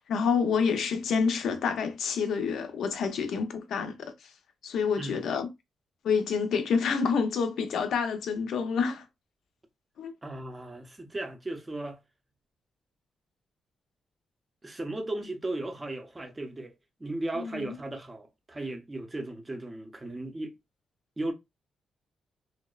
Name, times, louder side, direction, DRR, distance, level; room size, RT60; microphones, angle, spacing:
voice 1, 0.1-4.1 4.6-5.5 6.0-9.0 10.0-10.1 17.4-17.8, left 6 dB, 75° left, 0.5 m, -28 dB
voice 2, 10.2-12.0 14.6-16.7 17.0-20.5 21.2-21.3, right 2 dB, 20° right, 0.5 m, -36 dB
2.8 x 2.0 x 2.3 m
cardioid pair, 120°, 0 cm